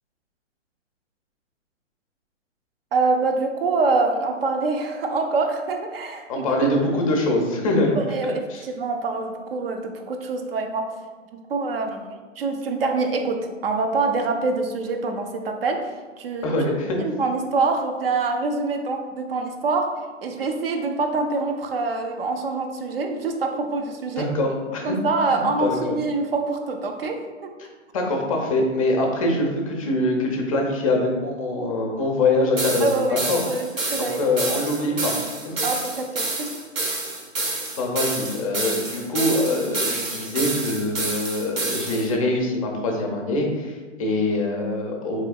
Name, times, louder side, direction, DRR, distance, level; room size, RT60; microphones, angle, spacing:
voice 1, 2.9-6.6 8.0-10.9 11.3-16.5 17.0-19.9 20.2-24.3 24.8-27.5 32.8-34.2 35.6-36.5, right 3 dB, 50° right, 4 dB, 0.5 m, -25 dB
voice 2, 6.3-8.0 8.5-8.6 16.4-17.0 24.2-25.0 25.3-26.0 27.9-33.4 34.2-35.1 35.4-35.7 37.8-45.2, left 2 dB, 30° left, 1 dB, 0.5 m, -24 dB
sound 1, 32.6-42.1, right 2 dB, 85° right, 0.8 m, -28 dB
3.9 x 3.1 x 2.2 m, 1.4 s
figure-of-eight pair, 120°, 38 cm